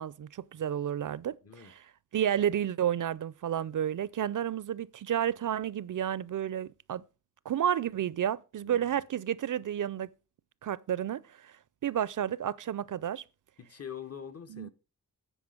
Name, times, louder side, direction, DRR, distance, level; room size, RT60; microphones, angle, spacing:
voice 1, 0.0-1.8 2.1-7.0 7.5-10.1 10.6-11.5 11.8-13.2 14.5-14.7, right 10 dB, 60° right, 0.5 m, -31 dB
voice 2, 1.4-1.7 8.6-9.0 13.6-14.7, left 8 dB, 45° left, 0.9 m, -44 dB
9.7 x 5.0 x 6.4 m
wide cardioid pair, 115°, 35 cm